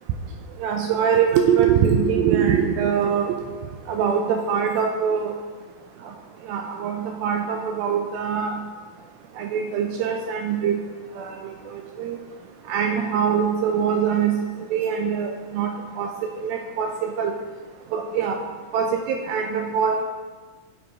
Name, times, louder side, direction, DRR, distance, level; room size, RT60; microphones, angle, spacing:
voice 1, 0.6-3.4 3.9-5.4 6.5-8.6 9.4-10.8 11.2-11.4 11.7-12.2 12.7-14.4 14.7-15.7 16.0-17.4 17.9-18.4 18.7-20.0, right 7 dB, 80° right, 3 dB, 2.1 m, -23 dB
7.3 x 6.3 x 5.1 m, 1.4 s
omnidirectional pair, 4.5 m